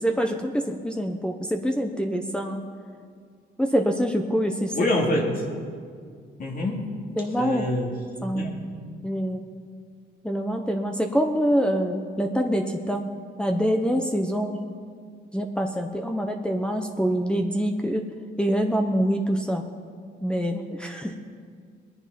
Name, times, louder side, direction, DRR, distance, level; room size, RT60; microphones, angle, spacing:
voice 1, 0.0-2.6 3.6-4.8 7.2-7.7 8.2-8.6 9.0-9.5 10.2-13.1 13.4-14.6 15.3-18.0 18.4-19.6 20.2-21.2, equal, 5° left, 1 dB, 1.1 m, -25 dB
voice 2, 4.7-5.4 6.4-6.9 7.4-7.9 8.2-8.5, left 1 dB, 45° left, -1 dB, 2.7 m, -26 dB
21.0 x 9.9 x 5.3 m, 2.1 s
cardioid pair, 90°, 20 cm